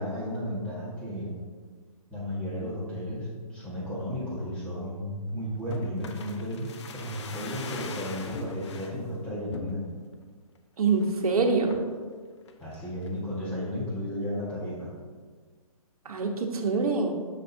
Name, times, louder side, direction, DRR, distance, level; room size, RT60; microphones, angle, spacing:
voice 1, 0.0-1.3 2.1-9.8 12.6-14.9, equal, 5° left, -8 dB, 1.6 m, -33 dB
sound 1, 5.7-9.0 9.5-10.1 10.6-10.7 10.9-11.2 11.7-12.0 12.5-13.2 13.5-13.6, left 4 dB, 50° left, 0.6 m, -41 dB
voice 2, 10.8-11.8 16.0-17.1, right 4 dB, 70° right, 3 dB, 1.2 m, -25 dB
7.6 x 6.1 x 2.8 m, 1.5 s
hypercardioid pair, 155°, 19 cm